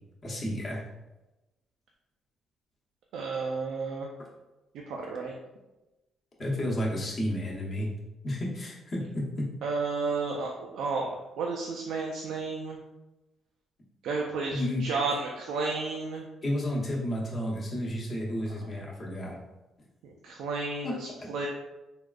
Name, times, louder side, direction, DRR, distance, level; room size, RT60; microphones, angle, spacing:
voice 1, 0.2-0.8 6.4-7.9 8.2-9.5 14.5-14.8 16.4-19.4 20.8-21.0, left 1 dB, 35° left, -4 dB, 0.9 m, -31 dB
voice 2, 3.1-4.1 4.9-5.3 9.6-11.1 11.4-12.8 14.0-16.3 20.0-21.5, right 4 dB, 85° right, -1 dB, 0.3 m, -32 dB
3.4 x 2.3 x 2.4 m, 1.0 s
cardioid pair, 90°, 0 cm